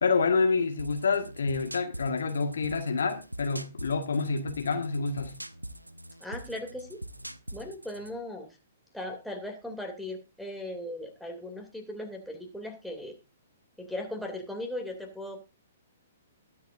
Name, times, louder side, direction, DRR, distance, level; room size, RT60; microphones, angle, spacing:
voice 1, 0.0-5.4, left 4 dB, 60° left, 1.6 m, -28 dB
sound 1, 0.8-8.2, right 1 dB, 85° right, 0.8 m, -43 dB
voice 2, 6.2-7.0 7.5-8.5 8.9-13.1 13.8-15.4, left 1 dB, ahead, 2.7 m, -38 dB
20.5 x 7.8 x 2.6 m
figure-of-eight pair, 115°, 0 cm